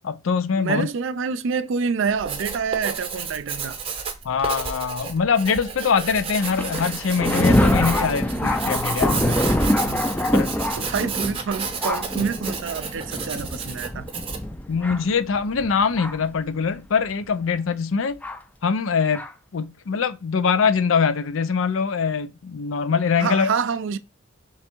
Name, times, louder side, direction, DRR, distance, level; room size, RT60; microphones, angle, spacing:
voice 1, 0.0-0.9 4.2-9.4 10.3-10.5 14.7-18.2 18.6-19.2 19.5-23.5, left 5 dB, 80° left, 0.5 m, -23 dB
voice 2, 0.6-3.8 9.8-10.1 10.8-14.1 23.2-24.0, right 5 dB, 70° right, 0.4 m, -27 dB
Writing, 2.1-14.5, right 5 dB, 30° right, 0.8 m, -32 dB
Thunder, 6.4-16.3 17.1-17.2 18.2-18.4 19.1-19.3, left 1 dB, 10° left, 0.4 m, -25 dB
3.4 x 3.2 x 4.4 m
head